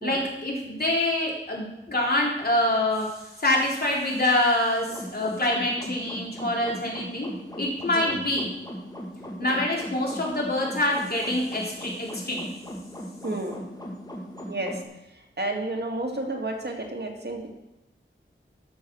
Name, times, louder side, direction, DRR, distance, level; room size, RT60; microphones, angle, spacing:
voice 1, 0.0-7.3 7.6-8.4 9.4-12.5, left 1 dB, 50° left, -3 dB, 3.7 m, -25 dB
sound 1, 4.9-14.9, equal, 20° left, 2.4 m, -39 dB
voice 2, 13.2-13.6 14.5-14.8 15.2-17.5, right 2 dB, 50° right, 1 dB, 2.2 m, -31 dB
12.0 x 6.8 x 6.3 m, 0.89 s
wide cardioid pair, 70°, 21 cm